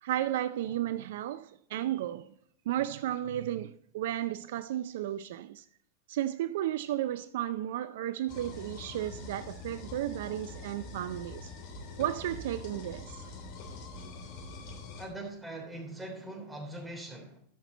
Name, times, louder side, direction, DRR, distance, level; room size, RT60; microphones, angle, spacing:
voice 1, 0.0-2.3 2.7-5.6 6.1-11.5 12.0-13.3, right 12 dB, 70° right, 0.4 m, -33 dB
sound 1, 8.3-15.1, left 3 dB, 55° left, 3.3 m, -44 dB
voice 2, 15.0-17.4, right 1 dB, 10° right, 3.5 m, -41 dB
13.5 x 6.0 x 4.0 m
hypercardioid pair, 110°, 0 cm